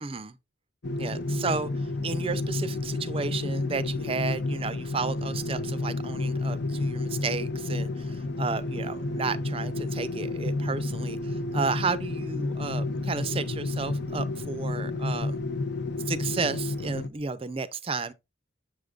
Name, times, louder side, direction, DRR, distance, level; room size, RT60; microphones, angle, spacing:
voice 1, 0.0-0.4 1.0-1.7 2.0-15.4 16.1-18.1, right 4 dB, 30° right, 0.4 m, -32 dB
sound 1, 0.8-17.1, left 2 dB, 55° left, 0.5 m, -30 dB
7.4 x 6.5 x 2.4 m
head